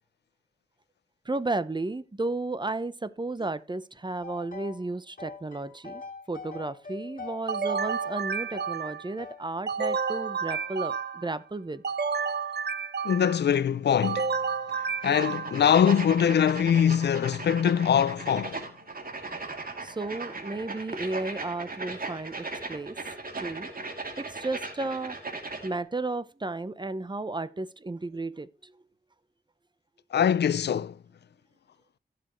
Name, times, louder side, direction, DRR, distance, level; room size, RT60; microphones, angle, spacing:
voice 1, 1.3-6.0 6.3-11.8 19.8-22.9 23.4-23.7 24.2-25.1 25.6-28.7, right 2 dB, 25° right, 0.8 m, -33 dB
sound 1, 4.2-4.9 5.2-9.4 9.8-10.1 10.5-11.1, left 4 dB, 55° left, 2.5 m, -43 dB
sound 2, 7.5-9.1 9.7-11.4 11.8-13.5 14.0-15.7, right 5 dB, 80° right, 0.9 m, -31 dB
voice 2, 13.0-14.3 14.7-18.6 30.1-31.0, left 8 dB, 90° left, 0.4 m, -23 dB
sound 3, 15.0-25.8, right 3 dB, 60° right, 3.0 m, -37 dB
15.5 x 6.8 x 3.1 m
wide cardioid pair, 70°, 17 cm